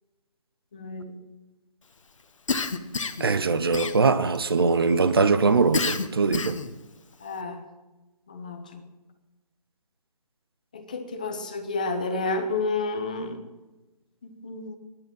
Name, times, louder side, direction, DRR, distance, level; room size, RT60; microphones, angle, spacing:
voice 1, 0.7-1.2 5.1-5.5 7.2-7.6 8.3-8.8 10.7-13.4 14.2-14.8, left 3 dB, 10° left, 0.7 m, -31 dB
Cough, 2.5-3.3 3.7-4.4 5.7-6.7, left 4 dB, 50° left, 1.1 m, -29 dB
voice 2, 3.2-6.6, right 4 dB, 35° right, 0.7 m, -22 dB
13.5 x 11.0 x 8.8 m
figure-of-eight pair, 170°, 20 cm